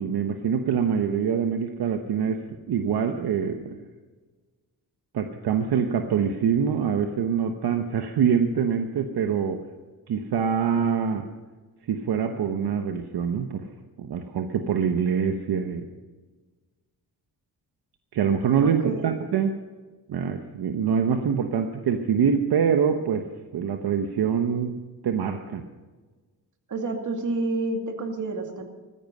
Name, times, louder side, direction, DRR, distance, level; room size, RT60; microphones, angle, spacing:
voice 1, 0.0-3.8 5.1-9.6 10.1-11.3 11.9-13.6 14.0-15.9 18.1-19.6 20.1-23.3 23.5-25.6, right 7 dB, 70° right, 6 dB, 1.1 m, -25 dB
voice 2, 18.6-19.1 26.7-28.7, right 2 dB, 50° right, 4 dB, 2.5 m, -29 dB
15.0 x 14.0 x 5.5 m, 1.3 s
cardioid pair, 90°, 39 cm